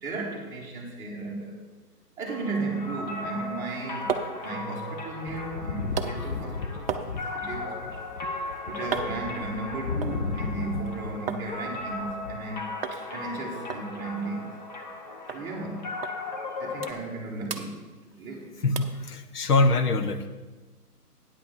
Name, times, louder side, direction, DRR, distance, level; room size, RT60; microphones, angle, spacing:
voice 1, 0.0-1.6 2.2-6.9 7.3-14.6 15.3-15.9 16.6-18.6, right 3 dB, 5° right, -5 dB, 1.2 m, -35 dB
sound 1, 2.3-16.9, left 2 dB, 30° left, 1.0 m, -37 dB
sound 2, 3.8-11.5 11.8-12.5 12.8-13.0 13.3-13.4 13.7-15.0 15.3-15.4 16.0-16.2 16.5-17.2 17.5-18.4 18.8-19.0 19.5-19.6, right 6 dB, 40° right, 0.7 m, -37 dB
sound 3, 5.3-11.2 11.5-12.4, left 4 dB, 45° left, 0.7 m, -35 dB
voice 2, 18.6-20.3, left 3 dB, 70° left, 9 dB, 1.2 m, -24 dB
9.4 x 5.8 x 6.9 m, 1.2 s
hypercardioid pair, 150°, 47 cm